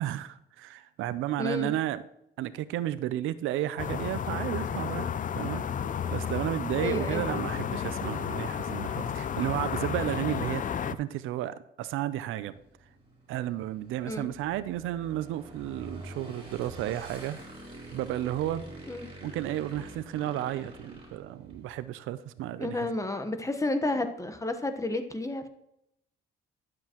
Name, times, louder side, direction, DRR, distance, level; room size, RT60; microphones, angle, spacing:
voice 1, 0.0-2.0 2.4-5.6 6.1-12.5 13.3-17.4 17.9-18.6 19.2-22.9, right 13 dB, 90° right, 15 dB, 0.5 m, -33 dB
voice 2, 1.4-1.7 6.8-7.2 14.1-14.3 18.9-19.1 22.6-25.5, left 2 dB, 15° left, 8 dB, 1.1 m, -31 dB
sound 1, 3.8-10.9, left 8 dB, 40° left, 0.5 m, -32 dB
Motorcycle / Engine, 12.4-21.8, right 1 dB, 30° right, 4.1 m, -46 dB
11.5 x 7.7 x 3.0 m, 0.79 s
cardioid pair, 90°, 20 cm